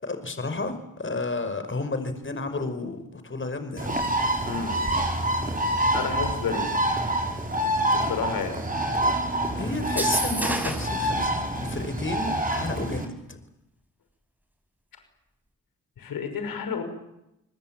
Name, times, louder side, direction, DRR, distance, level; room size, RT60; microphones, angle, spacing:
voice 1, 0.0-4.1 9.6-13.4, left 3 dB, 35° left, 9 dB, 5.3 m, -32 dB
Bird, 3.8-13.0, right 1 dB, 25° right, 6.1 m, -26 dB
voice 2, 4.5-4.8 5.9-6.7 7.9-8.5 16.0-16.8, left 6 dB, 80° left, 8 dB, 5.7 m, -30 dB
sound 1, 9.8-11.0, right 1 dB, 5° right, 5.3 m, -29 dB
29.5 x 21.0 x 9.0 m, 0.87 s
cardioid pair, 55°, 34 cm